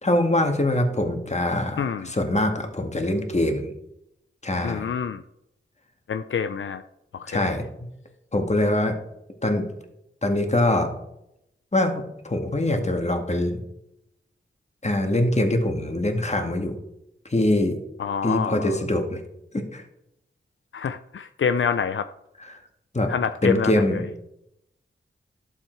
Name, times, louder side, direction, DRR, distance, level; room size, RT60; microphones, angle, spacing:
voice 1, 0.0-3.7 4.4-4.9 7.3-7.6 8.3-9.0 9.4-9.7 10.2-10.9 11.7-13.6 14.8-16.7 17.3-17.8 18.2-19.2 19.5-19.8 22.5-22.6 22.9-23.1 23.4-24.0, left 1 dB, 35° left, 4 dB, 2.0 m, -23 dB
voice 2, 1.8-2.1 4.6-5.2 6.1-6.8 7.1-7.5 18.0-18.8 20.7-22.1 23.1-24.0, left 6 dB, 70° left, 10 dB, 0.5 m, -27 dB
11.5 x 7.4 x 4.6 m, 0.82 s
cardioid pair, 55°, 21 cm